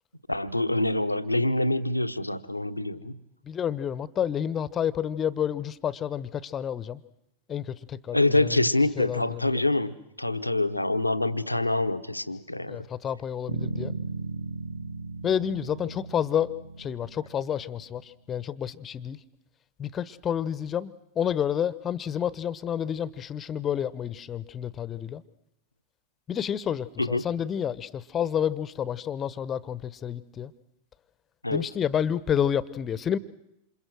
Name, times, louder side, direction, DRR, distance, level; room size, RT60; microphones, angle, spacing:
voice 1, 0.3-3.2 8.1-12.9 27.0-27.3 31.4-31.7, left 2 dB, 85° left, 10 dB, 1.1 m, -26 dB
voice 2, 3.5-7.0 7.5-8.5 9.0-9.6 12.7-13.9 15.2-16.5 16.8-19.2 19.8-25.2 26.3-30.5 31.5-33.2, left 9 dB, 25° left, 18 dB, 1.0 m, -29 dB
Bass guitar, 13.5-17.8, right 4 dB, 80° right, 1.1 m, -36 dB
28.0 x 27.5 x 6.3 m, 0.84 s
figure-of-eight pair, 90°, 0 cm